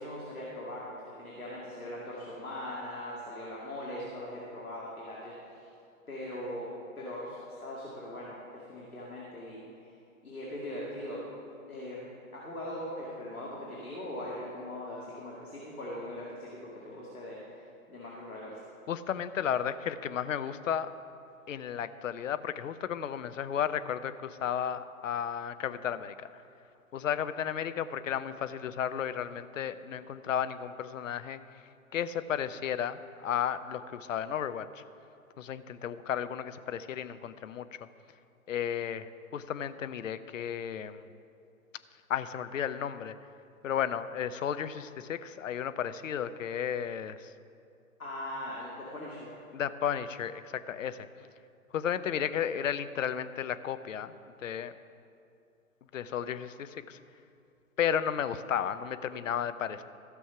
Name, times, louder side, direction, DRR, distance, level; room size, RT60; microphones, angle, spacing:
voice 1, 0.0-5.7 6.1-6.7 7.0-9.9 10.2-11.2 11.7-12.1 12.3-16.6 16.8-18.6 48.0-49.3, left 1 dB, 85° left, -5 dB, 2.3 m, -40 dB
voice 2, 18.9-20.9 21.5-26.1 26.9-31.6 31.9-34.8 35.4-37.7 38.5-41.1 42.1-43.1 43.6-47.3 49.5-51.1 51.7-54.1 54.4-54.7 55.9-57.0 57.8-59.8, left 9 dB, 65° left, 13 dB, 0.6 m, -33 dB
14.5 x 6.2 x 5.8 m, 2.5 s
figure-of-eight pair, 125°, 42 cm